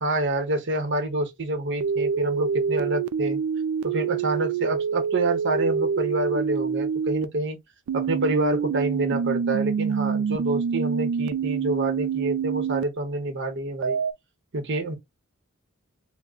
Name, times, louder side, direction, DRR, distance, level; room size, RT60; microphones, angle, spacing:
voice 1, 0.0-3.4 3.8-7.6 7.9-14.0 14.5-15.0, right 2 dB, 55° right, 1.0 m, -27 dB
sound 1, 1.8-7.2 7.9-12.8 13.8-14.1, right 7 dB, 75° right, 0.3 m, -26 dB
5.2 x 2.1 x 2.3 m
head